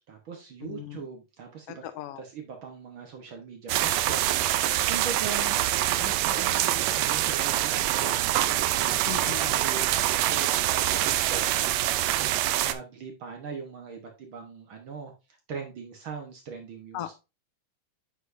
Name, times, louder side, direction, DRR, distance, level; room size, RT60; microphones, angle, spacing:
voice 1, 0.1-1.8 2.2-9.8 10.2-15.1 15.5-17.1, right 5 dB, 65° right, 1.3 m, -41 dB
voice 2, 0.6-1.1 1.7-2.2 9.1-9.6 16.9-17.1, left 13 dB, 90° left, 1.3 m, -38 dB
sound 1, 3.7-12.7, right 14 dB, 90° right, 1.5 m, -25 dB
8.1 x 5.3 x 2.6 m
omnidirectional pair, 3.7 m